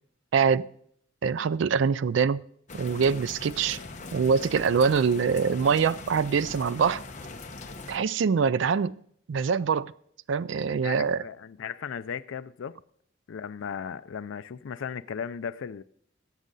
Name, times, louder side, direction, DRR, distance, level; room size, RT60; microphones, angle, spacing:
voice 1, 0.3-0.7 1.2-2.4 2.7-3.8 4.1-7.0 7.9-8.9 9.3-9.9 10.3-11.2, right 6 dB, 70° right, 0.4 m, -24 dB
sound 1, 2.7-8.0, left 3 dB, 35° left, 1.0 m, -41 dB
voice 2, 10.8-12.8 13.3-15.8, left 7 dB, 80° left, 0.4 m, -36 dB
16.5 x 7.4 x 3.9 m
head